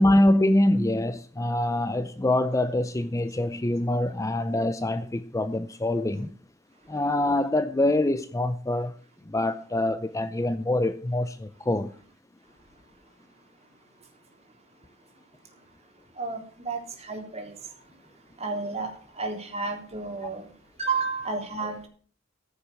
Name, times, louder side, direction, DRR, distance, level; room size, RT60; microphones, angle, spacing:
voice 1, 0.0-6.3 6.9-8.9 9.3-11.9, left 1 dB, 15° left, 0.5 m, -24 dB
voice 2, 12.4-21.9, right 4 dB, 30° right, 3.6 m, -35 dB
15.5 x 7.7 x 7.0 m
head